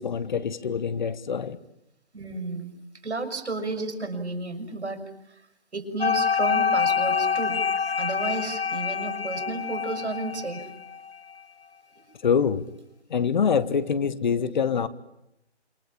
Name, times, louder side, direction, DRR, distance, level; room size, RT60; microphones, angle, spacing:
voice 1, 0.0-1.6 12.2-12.6 13.1-14.9, left 6 dB, 45° left, 1.3 m, -25 dB
voice 2, 2.1-2.7 3.0-5.0 5.7-7.6 8.0-10.7, right 3 dB, 75° right, 6.1 m, -32 dB
sound 1, 6.0-11.1, left 6 dB, 60° left, 2.1 m, -26 dB
28.0 x 24.5 x 8.7 m
figure-of-eight pair, 155°, 33 cm